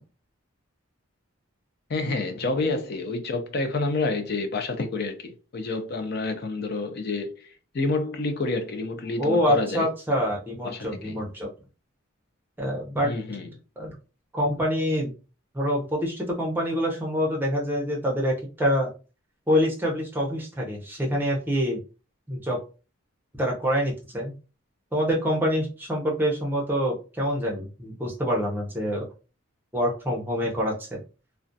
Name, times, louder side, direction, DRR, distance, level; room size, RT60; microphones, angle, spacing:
voice 1, 1.9-9.9 10.6-11.2 13.0-13.5, left 3 dB, 45° left, 0.4 m, -29 dB
voice 2, 9.2-11.5 12.6-13.1 13.8-13.9 14.3-15.1 15.5-18.9 19.5-21.8 22.3-22.6 23.4-24.3 24.9-29.1 29.7-31.0, equal, 10° right, 0.6 m, -26 dB
2.4 x 2.1 x 2.6 m
head